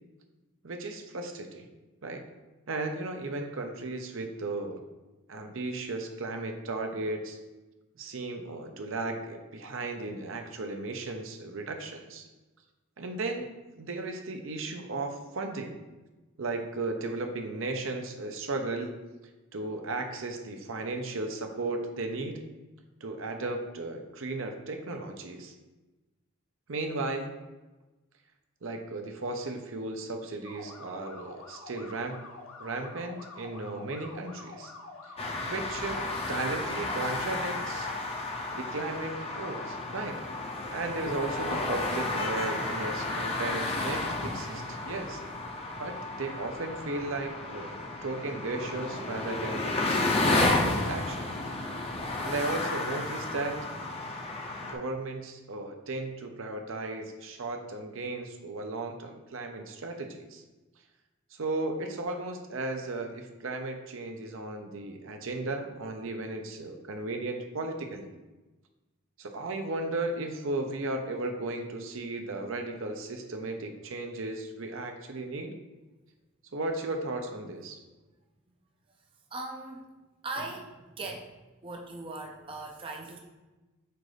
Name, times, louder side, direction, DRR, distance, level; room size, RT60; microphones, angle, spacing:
voice 1, 0.6-1.7 2.0-2.2 2.7-4.8 5.3-7.4 8.0-12.3 13.0-13.5 13.8-15.8 16.4-18.9 19.5-22.4 23.0-25.5 26.7-27.3 28.6-32.2 32.6-34.7 35.5-37.9 38.5-40.2 40.7-45.2 45.8-51.3 52.2-53.6 54.7-60.4 61.3-68.1 69.2-75.5 76.5-77.8, right 2 dB, 65° right, 4 dB, 0.7 m, -35 dB
sound 1, 30.4-36.6, left 3 dB, 80° left, 0.9 m, -47 dB
sound 2, 35.2-54.7, left 2 dB, 25° left, 0.6 m, -32 dB
voice 2, 79.3-79.9 80.2-81.3 81.6-83.2, right 2 dB, 25° right, 1 dB, 0.5 m, -39 dB
7.7 x 2.6 x 5.0 m, 1.1 s
head